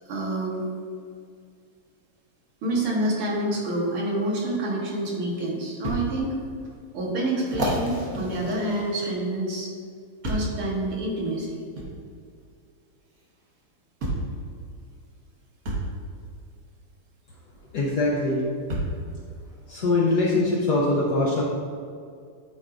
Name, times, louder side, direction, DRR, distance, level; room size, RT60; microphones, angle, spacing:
voice 1, 0.1-0.7 2.6-6.4 6.9-9.7 10.2-11.6, right 1 dB, 80° right, -3 dB, 2.1 m, -27 dB
sound 1, 5.8-6.0 6.6-6.7 7.4-9.3 10.2-10.6 11.8-11.9 13.2-13.3 14.0-14.3 15.6-15.9 17.5-17.6 18.7-19.0 19.8-19.9, right 1 dB, 50° right, 1.2 m, -30 dB
voice 2, 17.7-18.5 19.7-21.4, left 2 dB, 70° left, -3 dB, 1.0 m, -22 dB
9.5 x 4.6 x 2.5 m, 2.3 s
omnidirectional pair, 2.4 m